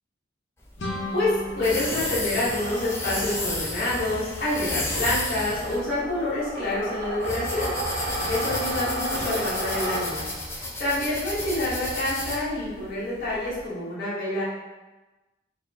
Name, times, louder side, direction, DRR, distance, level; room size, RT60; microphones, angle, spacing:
sound 1, 0.6-13.6, left 2 dB, 15° left, 0.4 m, -32 dB
sound 2, 0.8-3.5, left 2 dB, 70° left, 0.5 m, -36 dB
voice 1, 1.1-8.0 8.3-10.2 10.5-14.4, left 1 dB, 50° left, -11 dB, 1.3 m, -27 dB
sound 3, 2.3-10.5, right 1 dB, 75° right, 0.6 m, -34 dB
4.2 x 2.1 x 3.3 m, 1.1 s
head